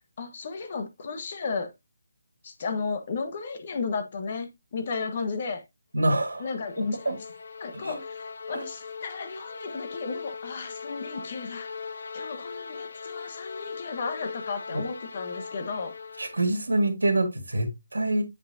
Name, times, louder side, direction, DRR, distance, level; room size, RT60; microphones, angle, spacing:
voice 1, 0.2-1.7 2.4-5.6 6.4-7.0 7.6-11.7 12.1-15.9, left 4 dB, 40° left, 1.2 m, -34 dB
voice 2, 5.9-7.2 7.7-8.0 8.5-8.7 14.7-14.8 16.2-18.2, right 1 dB, 85° right, 1.8 m, -27 dB
sound 1, 6.1-16.6, left 5 dB, 60° left, 0.8 m, -40 dB
8.1 x 5.2 x 2.7 m
figure-of-eight pair, 160°, 0 cm